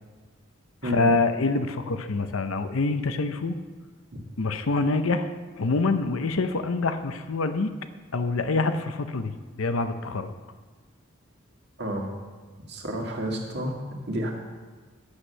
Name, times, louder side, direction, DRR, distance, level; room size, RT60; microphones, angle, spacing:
voice 1, 0.8-3.6 4.4-7.7 8.1-10.3, left 3 dB, 75° left, 9 dB, 0.7 m, -26 dB
voice 2, 11.8-12.1 12.7-13.8 14.1-14.3, equal, 50° right, 0 dB, 1.9 m, -30 dB
11.5 x 8.2 x 5.5 m, 1.4 s
head